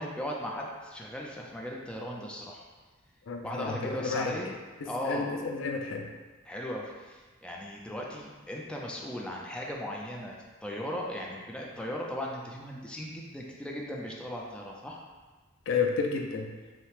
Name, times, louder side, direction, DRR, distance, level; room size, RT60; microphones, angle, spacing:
voice 1, 0.0-2.6 3.4-4.5 4.9-5.3 6.5-10.3 10.6-15.0, left 1 dB, 5° left, -2 dB, 0.4 m, -37 dB
voice 2, 3.3-4.4 4.8-6.1 15.7-16.5, left 5 dB, 65° left, 3 dB, 0.4 m, -31 dB
5.6 x 2.1 x 3.2 m, 1.3 s
head